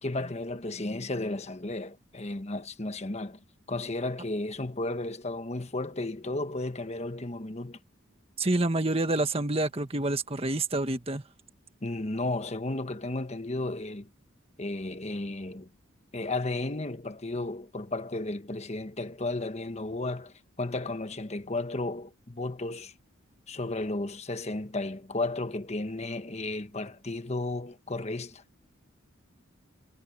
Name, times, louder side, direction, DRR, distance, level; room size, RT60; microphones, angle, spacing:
voice 1, 0.0-3.4 3.7-7.8 11.8-14.1 14.6-15.7 16.1-22.9 23.5-28.4, left 2 dB, 30° left, 1.2 m, -33 dB
voice 2, 8.4-11.2, right 2 dB, 30° right, 1.6 m, -27 dB
head